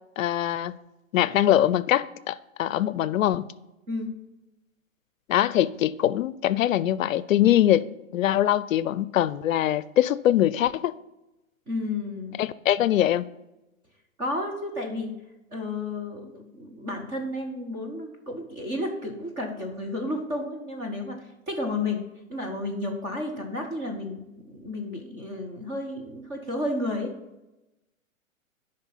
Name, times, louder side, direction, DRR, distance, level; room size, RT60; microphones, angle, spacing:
voice 1, 0.2-0.7 1.1-3.5 5.3-7.9 8.1-11.0 12.4-13.3, left 12 dB, 70° left, 0.5 m, -23 dB
voice 2, 11.7-12.4 14.2-15.1 15.5-22.0 22.3-27.1, left 2 dB, 10° right, 0.4 m, -32 dB
8.9 x 5.4 x 5.6 m
hypercardioid pair, 140°, 41 cm